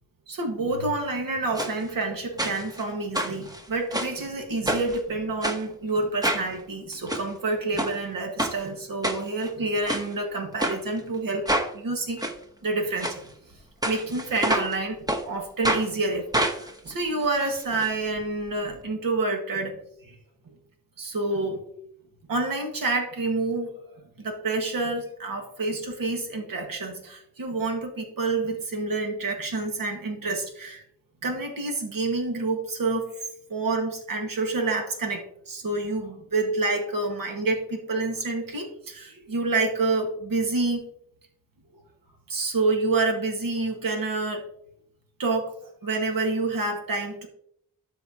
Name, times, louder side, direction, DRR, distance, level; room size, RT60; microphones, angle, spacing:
voice 1, 0.3-11.5 11.7-12.2 12.6-13.1 13.8-15.0 15.3-19.8 20.0-20.2 20.5-20.6 21.0-21.6 22.3-23.7 24.2-30.8 31.2-33.2 33.5-40.9 42.3-44.4 45.2-45.5 45.8-47.3, right 3 dB, 75° right, 2 dB, 1.6 m, -28 dB
sound 1, 1.6-1.7 2.4-2.8 3.1-4.2 4.7-5.0 5.4-5.6 6.2-6.5 6.9-7.2 7.8-7.9 8.4-8.6 9.0-9.5 9.9-10.1 10.6-10.8 11.5-11.7 12.2-12.3 13.0-13.2 13.8-14.8 15.1-15.2 15.6-15.9 16.3-17.9 18.2-18.3 18.5-18.6, right 1 dB, 10° right, 0.9 m, -27 dB
12.5 x 4.5 x 2.8 m, 0.69 s
wide cardioid pair, 100°, 34 cm